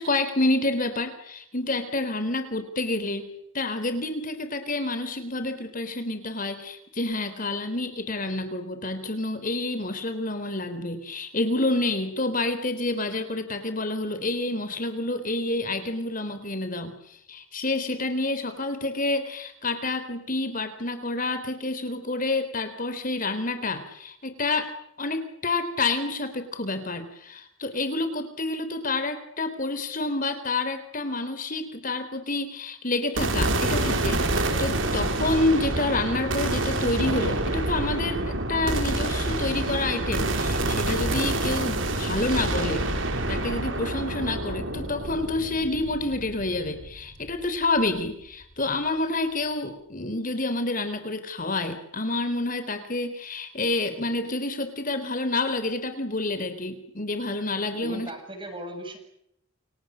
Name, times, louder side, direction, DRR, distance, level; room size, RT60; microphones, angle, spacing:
voice 1, 0.0-3.3 3.5-24.7 25.0-42.8 43.3-58.1, left 2 dB, 40° left, 9 dB, 3.9 m, -28 dB
sound 1, 33.2-47.5, right 2 dB, 65° right, 5.1 m, -27 dB
voice 2, 57.8-59.0, equal, 25° right, 6 dB, 7.4 m, -37 dB
29.5 x 25.5 x 6.5 m, 0.75 s
head